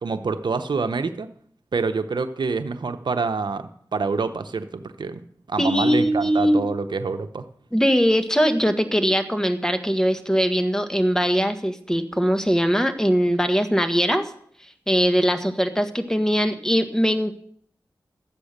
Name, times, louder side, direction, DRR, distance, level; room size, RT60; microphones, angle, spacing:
voice 1, 0.0-1.3 1.7-7.4, right 4 dB, 80° right, 9 dB, 0.8 m, -27 dB
voice 2, 5.6-6.7 7.7-14.3 14.9-17.3, equal, 10° left, 8 dB, 1.5 m, -21 dB
12.5 x 8.5 x 6.6 m, 0.64 s
cardioid pair, 40°, 8 cm